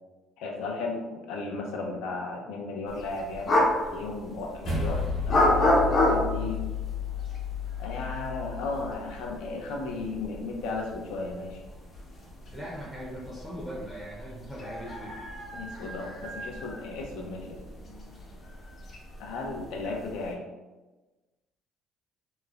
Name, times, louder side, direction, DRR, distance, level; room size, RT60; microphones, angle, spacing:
voice 1, 0.4-6.6 7.8-11.6 15.5-17.6 19.2-20.4, left 3 dB, 90° left, 0 dB, 0.5 m, -35 dB
sound 1, 2.9-20.3, left 1 dB, 40° left, 0.6 m, -31 dB
sound 2, 4.6-9.2, left 6 dB, 70° left, 1.1 m, -32 dB
voice 2, 12.5-15.2, equal, 5° right, -6 dB, 0.5 m, -39 dB
3.0 x 2.1 x 2.3 m, 1.2 s
cardioid pair, 150°, 0 cm